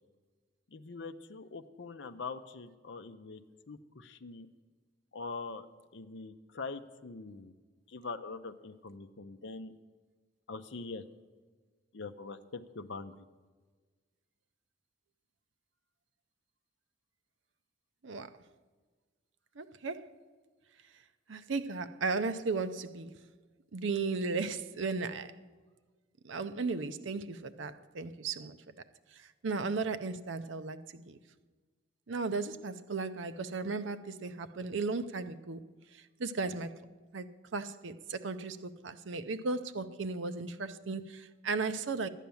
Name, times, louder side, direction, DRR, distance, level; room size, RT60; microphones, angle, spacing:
voice 1, 0.7-3.4 3.7-4.5 5.1-5.7 5.9-7.5 7.9-9.7 10.5-11.0 11.9-13.1, left 4 dB, 65° left, 0.6 m, -43 dB
voice 2, 19.6-20.1 21.3-23.1 23.7-25.3 26.2-28.6 29.1-31.2 32.1-35.6 35.9-36.8 37.1-42.1, right 4 dB, 75° right, 0.6 m, -36 dB
11.5 x 9.2 x 7.0 m
head